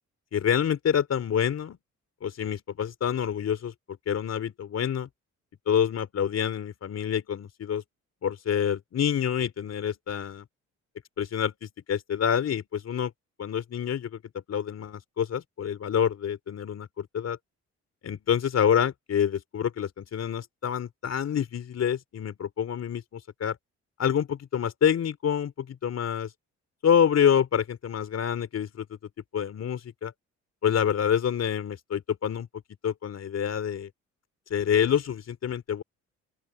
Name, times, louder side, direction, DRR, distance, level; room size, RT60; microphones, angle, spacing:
voice 1, 0.3-1.8 2.2-3.7 4.1-5.1 5.7-7.8 8.2-10.4 11.2-13.1 13.4-14.2 14.5-17.4 18.0-23.6 24.0-26.3 26.8-28.9 29.3-30.1 30.6-32.5 32.8-33.9 34.5-35.8, left 8 dB, 55° left, 3.6 m, -27 dB
open air
cardioid pair, 90°, 30 cm